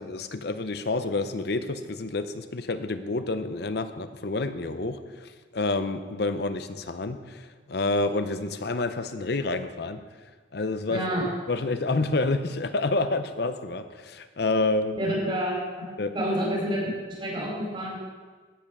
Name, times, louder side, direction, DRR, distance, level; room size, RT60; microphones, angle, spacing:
voice 1, 0.0-10.0 10.5-11.1 11.5-15.0 16.0-16.1, left 2 dB, 60° left, 10 dB, 0.7 m, -28 dB
voice 2, 10.9-11.2 15.0-15.9 16.1-16.8 17.1-18.0, equal, 30° right, -4 dB, 4.0 m, -28 dB
15.5 x 5.6 x 6.2 m, 1.4 s
head